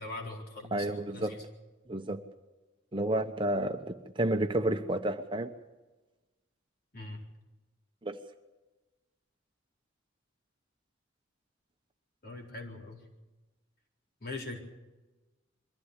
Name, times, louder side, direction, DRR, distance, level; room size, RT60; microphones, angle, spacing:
voice 1, 0.0-1.4 6.9-7.2 12.2-13.0 14.2-14.6, left 2 dB, 50° left, 1 dB, 4.3 m, -41 dB
voice 2, 0.7-1.4 1.9-2.2 2.9-5.5 8.0-8.2, right 1 dB, 25° right, 6 dB, 1.0 m, -30 dB
23.0 x 15.0 x 8.2 m, 1.1 s
head